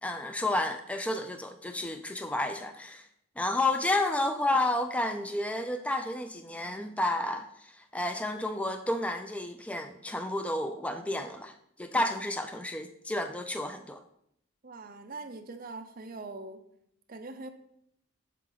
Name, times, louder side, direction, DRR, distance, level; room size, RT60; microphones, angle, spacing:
voice 1, 0.0-3.1 3.4-11.5 11.8-14.0, left 1 dB, 5° left, 7 dB, 0.3 m, -31 dB
voice 2, 14.6-16.6 17.1-17.5, right 3 dB, 40° right, 7 dB, 0.6 m, -42 dB
7.5 x 7.4 x 3.9 m, 0.75 s
head